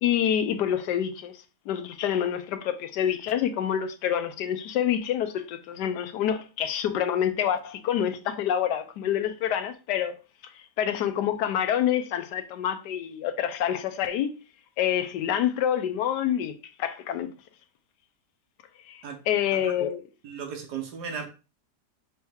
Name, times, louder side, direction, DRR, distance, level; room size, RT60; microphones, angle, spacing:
voice 1, 0.0-1.3 1.7-10.2 10.4-14.3 14.8-17.3 18.9-20.0, left 9 dB, 90° left, 1.2 m, -27 dB
voice 2, 20.2-21.3, right 6 dB, 75° right, 1.5 m, -36 dB
5.2 x 2.9 x 3.5 m
omnidirectional pair, 1.8 m